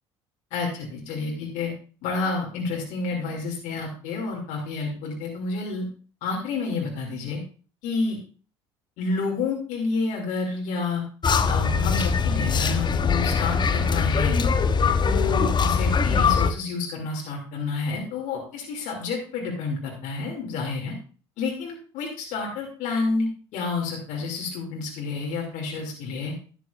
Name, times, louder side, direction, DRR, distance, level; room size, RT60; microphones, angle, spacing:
voice 1, 0.5-1.7 2.0-5.9 6.2-7.4 7.8-8.2 9.0-11.0 11.5-14.4 15.0-20.9 21.4-26.3, left 4 dB, 65° left, -1 dB, 2.7 m, -29 dB
sound 1, 11.2-16.5, left 5 dB, 30° left, 0.9 m, -22 dB
11.5 x 10.0 x 2.5 m, 0.38 s
hypercardioid pair, 65°, 14 cm